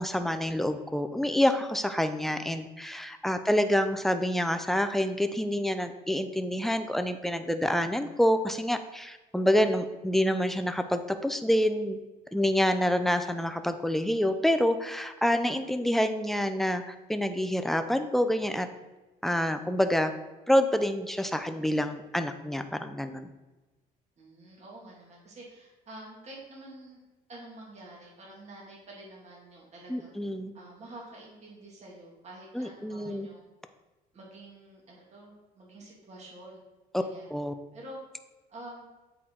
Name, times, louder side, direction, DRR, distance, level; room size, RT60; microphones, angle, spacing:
voice 1, 0.0-12.0 12.3-18.7 19.2-20.1 20.5-23.3 29.9-30.5 32.5-33.3 36.9-37.0 37.3-37.5, equal, ahead, 8 dB, 0.5 m, -27 dB
voice 2, 24.2-27.0 27.3-30.1 30.5-33.4 34.1-36.6 37.0-37.3 37.7-38.0 38.5-38.9, right 1 dB, 40° right, -3 dB, 2.2 m, -48 dB
8.3 x 4.4 x 3.8 m, 1.2 s
cardioid pair, 110°, 17 cm